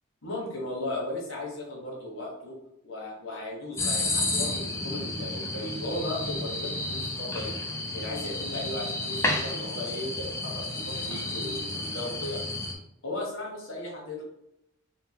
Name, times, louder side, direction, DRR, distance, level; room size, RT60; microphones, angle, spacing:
voice 1, 0.2-2.6 2.8-7.5 7.9-12.4 13.0-14.2, left 1 dB, 70° left, -3 dB, 1.2 m, -36 dB
sound 1, 3.8-12.7, left 2 dB, 15° left, 0.4 m, -31 dB
3.6 x 2.2 x 4.3 m, 0.84 s
head